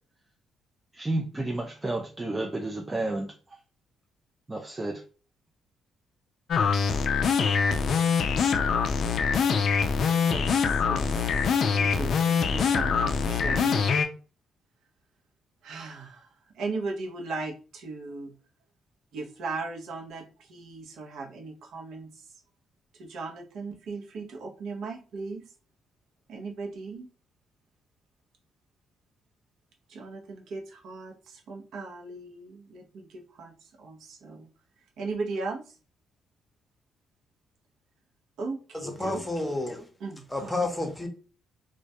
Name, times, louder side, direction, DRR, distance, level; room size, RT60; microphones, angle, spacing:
voice 1, 0.9-3.3 4.5-5.0, right 2 dB, 20° right, 0.3 m, -31 dB
sound 1, 6.5-14.1, left 6 dB, 60° left, 0.3 m, -24 dB
voice 2, 10.2-13.9 15.6-16.3 16.5-18.3 19.1-22.3 23.0-25.5 26.3-27.1 29.9-34.5 35.0-35.6 38.4-39.2 40.0-40.5, right 3 dB, 75° right, 0.6 m, -37 dB
voice 3, 38.7-39.9 40.3-41.1, left 2 dB, 10° left, 0.7 m, -30 dB
2.2 x 2.1 x 2.7 m
cardioid pair, 90°, 0 cm